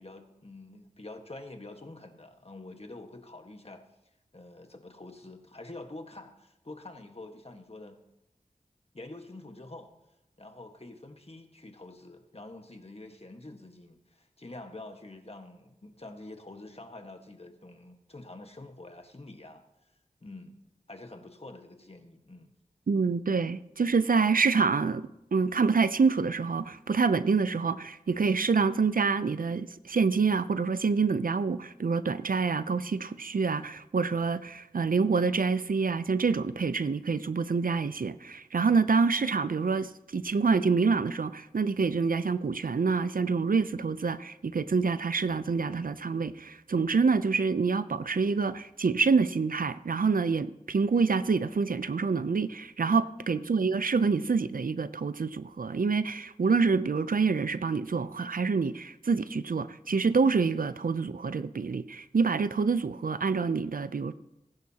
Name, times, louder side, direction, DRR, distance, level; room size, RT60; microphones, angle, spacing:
voice 1, 0.0-3.8 4.3-8.0 8.9-9.9 10.4-19.6 20.2-20.6 20.9-22.5 53.3-53.6, left 2 dB, 45° left, 5 dB, 1.5 m, -46 dB
voice 2, 22.9-64.1, right 4 dB, 75° right, 14 dB, 0.5 m, -27 dB
19.5 x 10.5 x 2.9 m, 0.87 s
wide cardioid pair, 45°, 15 cm